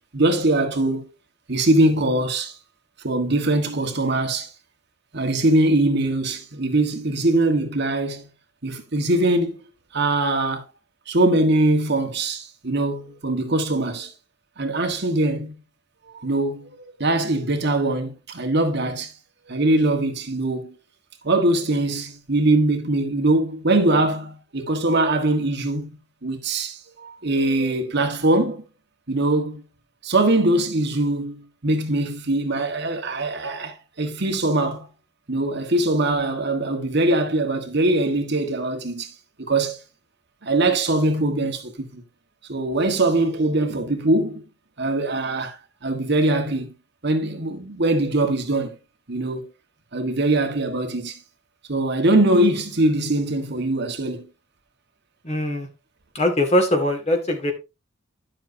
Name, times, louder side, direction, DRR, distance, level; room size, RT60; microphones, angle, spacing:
voice 1, 0.1-1.1 1.5-2.5 3.0-4.5 5.1-8.3 8.6-9.6 9.9-10.7 11.1-14.1 14.6-15.6 16.1-16.7 17.0-19.1 19.5-20.7 21.2-25.9 26.2-28.6 29.1-29.6 30.0-34.9 35.3-39.1 39.4-39.8 40.4-42.0 42.5-44.4 44.8-45.6 45.8-46.7 47.0-48.8 49.1-49.5 49.9-51.2 51.7-54.3, right 2 dB, 55° right, 1.5 m, -22 dB
voice 2, 55.2-55.7 56.1-57.5, left 1 dB, 30° left, 2.1 m, -21 dB
11.0 x 7.5 x 2.7 m
head